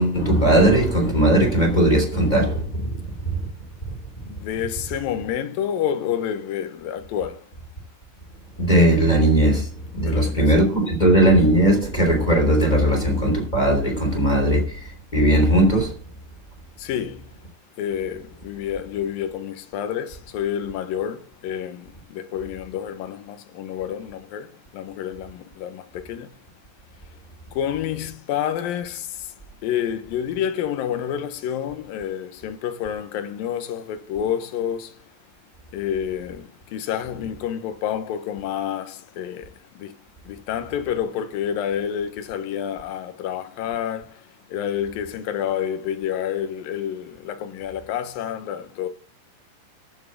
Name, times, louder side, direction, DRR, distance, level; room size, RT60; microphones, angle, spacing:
voice 1, 0.0-2.9 8.6-15.9, right 1 dB, 10° left, 2.6 m, -18 dB
voice 2, 4.3-7.5 10.0-10.4 16.8-17.3 17.8-26.4 27.5-29.3 29.6-35.0 35.7-39.9 40.3-44.2 44.5-48.9, left 9 dB, 70° left, 2.6 m, -29 dB
13.5 x 6.1 x 7.4 m
omnidirectional pair, 4.7 m